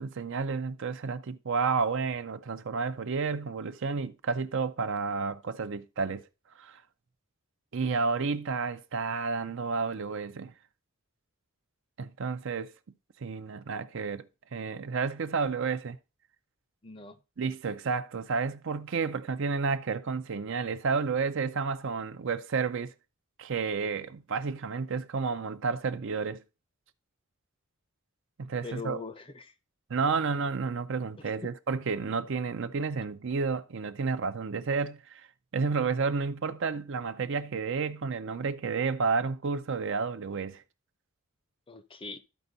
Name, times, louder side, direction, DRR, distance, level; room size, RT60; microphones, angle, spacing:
voice 1, 0.0-6.2 6.6-6.8 7.7-10.5 12.0-12.7 13.2-14.3 14.5-16.0 17.4-22.9 23.4-26.4 28.4-29.0 29.9-35.3 35.5-40.6, right 5 dB, 60° right, 0.5 m, -31 dB
voice 2, 16.8-17.2 28.6-29.5 31.2-31.3 41.7-42.2, left 4 dB, 25° left, 0.6 m, -41 dB
12.5 x 4.4 x 4.0 m
head